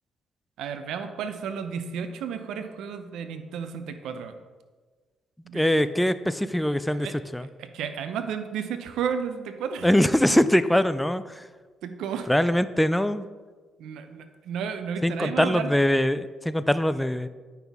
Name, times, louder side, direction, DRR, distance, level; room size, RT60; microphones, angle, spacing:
voice 1, 0.6-4.4 5.4-5.8 6.9-7.1 7.6-9.9 10.3-10.4 11.8-12.3 13.8-15.7, right 7 dB, 85° right, 8 dB, 0.6 m, -33 dB
voice 2, 5.5-7.1 7.3-7.5 9.8-11.5 12.3-13.3 15.0-17.3, left 1 dB, 5° left, 13 dB, 0.3 m, -22 dB
9.1 x 5.7 x 3.6 m, 1.4 s
cardioid pair, 90°, 0 cm